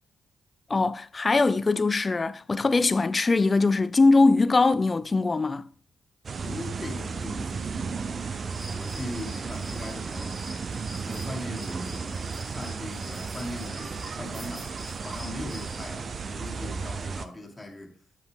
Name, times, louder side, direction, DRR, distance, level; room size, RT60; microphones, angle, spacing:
voice 1, 0.7-5.6, left 3 dB, 30° left, 0.5 m, -22 dB
sound 1, 6.2-17.3, right 5 dB, 45° right, 0.6 m, -34 dB
voice 2, 6.4-8.4 8.7-10.4 11.0-12.2 12.5-14.7 15.0-17.9, left 1 dB, 15° left, 2.4 m, -39 dB
sound 2, 8.5-15.9, equal, 20° right, 4.5 m, -46 dB
8.1 x 7.8 x 3.6 m
cardioid pair, 95°, 0 cm